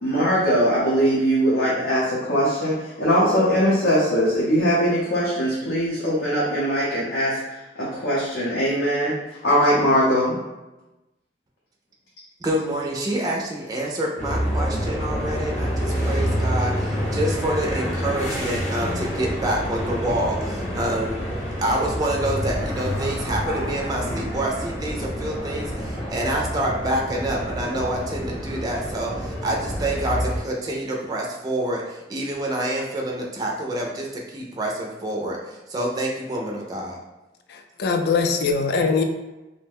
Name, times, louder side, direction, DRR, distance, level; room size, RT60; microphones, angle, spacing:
voice 1, 0.0-9.1 9.4-10.4, equal, 90° left, -7 dB, 0.7 m, -21 dB
voice 2, 12.4-21.2 21.6-37.0, right 1 dB, 20° right, -1 dB, 0.4 m, -27 dB
sound 1, 14.2-30.4, equal, 45° left, 0.8 m, -27 dB
voice 3, 37.5-39.0, left 4 dB, 65° left, 5 dB, 0.4 m, -22 dB
2.6 x 2.1 x 3.4 m, 1.0 s
head